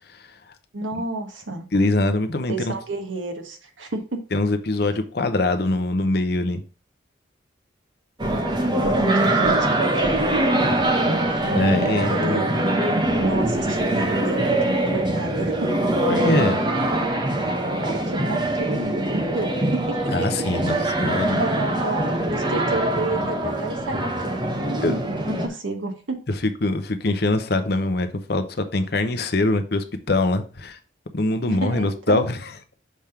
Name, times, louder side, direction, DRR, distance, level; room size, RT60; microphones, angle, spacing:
voice 1, 0.7-1.7 2.5-4.2 9.0-11.6 11.9-12.9 13.2-15.7 17.8-20.1 21.4-26.2 31.5-32.2, right 2 dB, 85° right, 5 dB, 1.4 m, -30 dB
voice 2, 1.7-2.7 4.3-6.6 11.5-12.5 16.1-16.6 20.1-21.5 22.5-22.6 24.8-24.9 26.3-30.8 31.1-32.5, left 2 dB, 55° left, 8 dB, 0.8 m, -23 dB
sound 1, 8.2-25.5, right 1 dB, 25° right, 1.0 m, -23 dB
6.2 x 3.6 x 5.7 m, 0.36 s
head